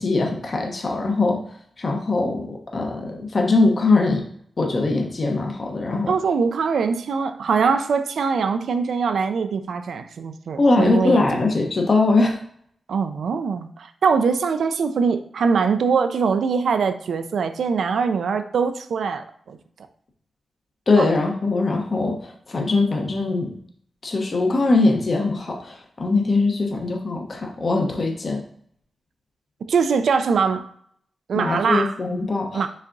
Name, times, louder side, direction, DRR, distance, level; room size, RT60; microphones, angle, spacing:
voice 1, 0.0-1.4 1.8-4.2 4.6-6.1 10.6-12.4 20.9-23.5 24.0-28.4 31.3-32.6, left 3 dB, 50° left, 2 dB, 0.8 m, -21 dB
voice 2, 6.1-11.3 12.9-19.6 21.0-21.1 29.7-30.7 31.3-31.9 32.5-32.7, right 5 dB, 80° right, 9 dB, 0.4 m, -22 dB
5.4 x 3.5 x 2.6 m, 0.64 s
cardioid pair, 65°, 0 cm